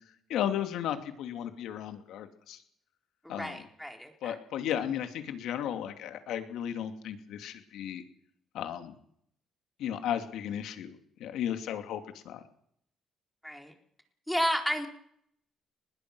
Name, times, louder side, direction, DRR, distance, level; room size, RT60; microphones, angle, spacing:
voice 1, 0.3-2.6 3.3-3.6 4.2-8.0 8.5-8.9 9.8-12.4, left 10 dB, 85° left, 7 dB, 2.7 m, -34 dB
voice 2, 3.2-4.4 13.4-13.7 14.3-14.9, equal, 5° left, 4 dB, 4.4 m, -32 dB
23.0 x 20.5 x 6.3 m, 0.67 s
cardioid pair, 90°, 0 cm